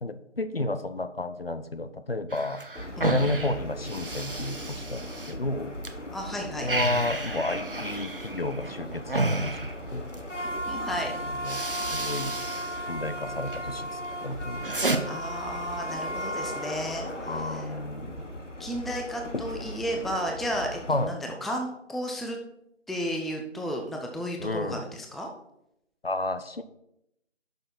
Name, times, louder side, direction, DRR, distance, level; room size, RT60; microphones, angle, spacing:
voice 1, 0.0-2.6 3.0-5.7 6.6-10.1 11.2-11.6 11.9-12.4 12.9-14.6 17.3-18.2 20.9-21.1 24.4-24.8 26.0-26.6, left 2 dB, 55° left, 11 dB, 0.7 m, -32 dB
sound 1, 2.3-5.9 6.2-10.3 10.9-11.1 11.4-12.8 13.1-13.6 14.0-15.0, right 2 dB, 50° right, 0.9 m, -32 dB
sound 2, 2.8-21.1, equal, 85° left, 1.5 m, -36 dB
voice 2, 6.1-6.7 10.4-11.1 15.1-17.7 18.6-22.4 22.9-25.3, equal, ahead, 2 dB, 0.5 m, -33 dB
9.6 x 6.4 x 4.3 m, 0.80 s
figure-of-eight pair, 165°, 36 cm